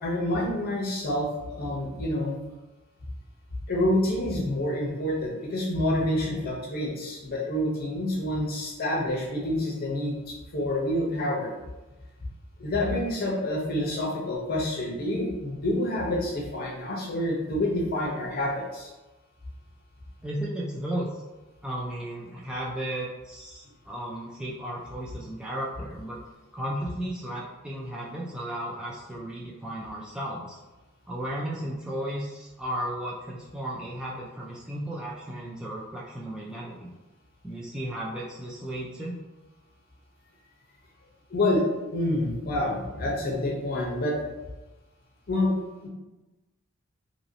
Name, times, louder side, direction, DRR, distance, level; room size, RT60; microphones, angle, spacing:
voice 1, 0.0-2.4 3.7-11.5 12.6-18.9 41.3-41.6 41.9-44.2 45.3-45.5 45.8-45.9, left 1 dB, 45° left, -3 dB, 0.8 m, -28 dB
voice 2, 20.2-21.1 21.6-26.2 26.5-30.6 31.1-36.9 37.4-39.2, right 1 dB, 5° right, -6 dB, 0.3 m, -34 dB
2.9 x 2.7 x 2.7 m, 1.1 s
head